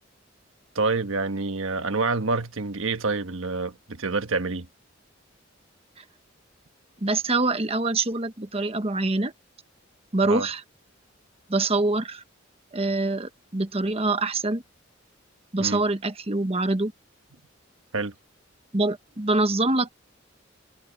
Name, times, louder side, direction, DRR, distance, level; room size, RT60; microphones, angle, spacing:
voice 1, 0.7-4.7 10.2-10.5 15.6-15.8 17.9-18.1, right 3 dB, 85° right, 1.3 m, -27 dB
voice 2, 7.0-9.3 10.1-10.6 11.5-12.2 12.7-14.6 15.5-16.9 18.7-19.9, right 2 dB, 30° right, 1.1 m, -25 dB
head